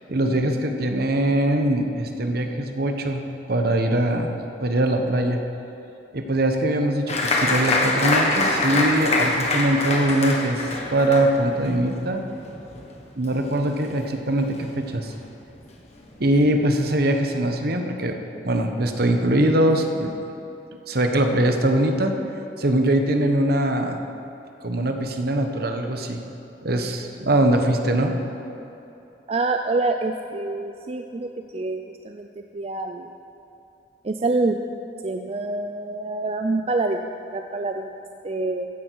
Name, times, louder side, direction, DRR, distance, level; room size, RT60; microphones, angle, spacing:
voice 1, 0.1-5.4 6.1-12.2 13.1-15.1 16.2-18.2 18.4-20.1 20.9-22.1 22.6-24.0 24.6-26.2 26.6-28.2, right 1 dB, 60° right, 5 dB, 1.1 m, -22 dB
Applause, 7.1-14.1 14.4-15.1 15.5-15.6 16.0-16.4, left 2 dB, 40° left, 1.5 m, -25 dB
voice 2, 29.3-31.8 32.0-32.3 32.5-33.1 34.0-34.6 35.0-37.0 37.3-37.9 38.2-38.7, right 3 dB, 35° right, 5 dB, 0.5 m, -26 dB
15.0 x 10.0 x 4.7 m, 3.0 s
head